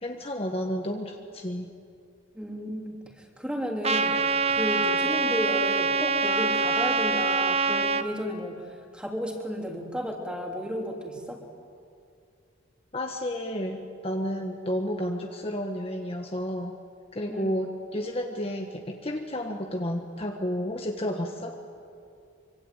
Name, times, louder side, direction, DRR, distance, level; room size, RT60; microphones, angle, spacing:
voice 1, 0.0-1.7 12.9-16.7 17.1-21.6, equal, 30° left, 3 dB, 1.4 m, -31 dB
voice 2, 2.3-11.4 17.3-17.5, equal, 5° right, 1 dB, 3.2 m, -33 dB
Trumpet, 3.8-8.0, right 4 dB, 30° right, 0.8 m, -25 dB
25.0 x 25.0 x 9.1 m, 2.5 s
head